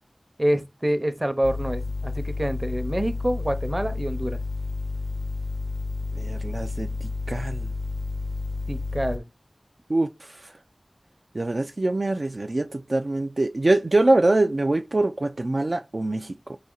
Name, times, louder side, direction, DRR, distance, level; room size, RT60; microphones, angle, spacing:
voice 1, 0.4-4.4 8.7-9.3, right 1 dB, 25° right, 0.7 m, -26 dB
sound 1, 1.4-9.2, left 3 dB, 70° left, 0.4 m, -31 dB
voice 2, 6.2-6.9 7.3-7.7 9.9-10.1 11.3-16.6, right 2 dB, 55° right, 0.3 m, -24 dB
4.1 x 2.8 x 3.8 m
wide cardioid pair, 60°, 0 cm